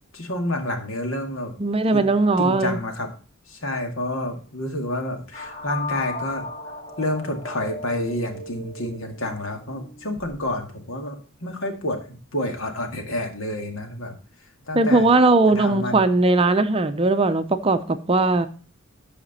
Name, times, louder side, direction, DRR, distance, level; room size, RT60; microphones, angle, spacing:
voice 1, 0.1-1.5 1.9-2.0 2.4-3.1 3.5-6.4 7.0-14.2 14.7-15.1 15.6-16.0, left 1 dB, 80° left, 5 dB, 2.1 m, -29 dB
voice 2, 1.6-2.8 14.7-18.5, right 2 dB, 30° right, 9 dB, 0.6 m, -19 dB
sound 1, 5.3-10.6, left 2 dB, 40° left, 2.2 m, -36 dB
14.0 x 5.0 x 4.2 m, 0.39 s
head